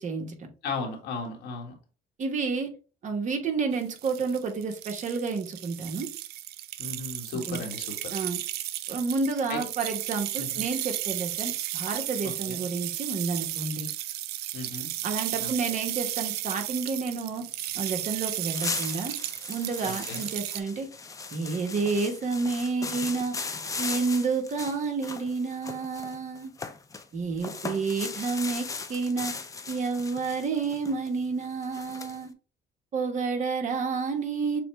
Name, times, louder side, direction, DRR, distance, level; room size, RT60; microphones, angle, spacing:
voice 1, 0.0-0.5 2.2-2.7 3.0-6.1 7.5-7.6 8.1-8.4 8.9-13.9 15.0-17.5 17.7-19.2 19.5-20.9 21.3-23.3 23.8-26.5 27.1-29.3 29.7-32.3 32.9-34.6, right 4 dB, 45° right, 4 dB, 1.1 m, -30 dB
voice 2, 0.6-1.7 6.8-8.1 9.5-9.6 10.4-10.6 12.2-12.6 14.5-14.9 15.4-15.7 19.8-20.2, left 3 dB, 85° left, 1 dB, 1.5 m, -36 dB
sound 1, 3.8-20.6, right 14 dB, 70° right, 0.4 m, -34 dB
sound 2, 18.1-18.2 18.5-27.1 27.4-32.2, left 4 dB, 20° left, 0.5 m, -38 dB
6.7 x 2.2 x 3.1 m, 0.35 s
cardioid pair, 110°, 17 cm